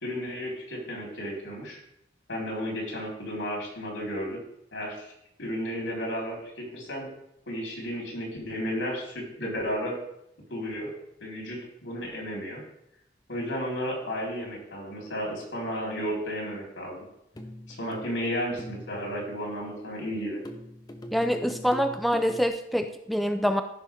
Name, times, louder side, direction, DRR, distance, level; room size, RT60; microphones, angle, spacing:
voice 1, 0.0-1.8 2.3-4.4 4.7-5.1 5.4-7.1 7.5-9.9 10.5-10.9 11.2-12.6 13.3-17.0 17.7-20.4, equal, 85° left, -2 dB, 4.3 m, -33 dB
sound 1, 17.3-19.7 20.4-22.5, equal, 20° left, 0.8 m, -42 dB
voice 2, 21.1-23.6, equal, ahead, 7 dB, 0.4 m, -25 dB
14.5 x 5.8 x 3.7 m, 0.79 s
head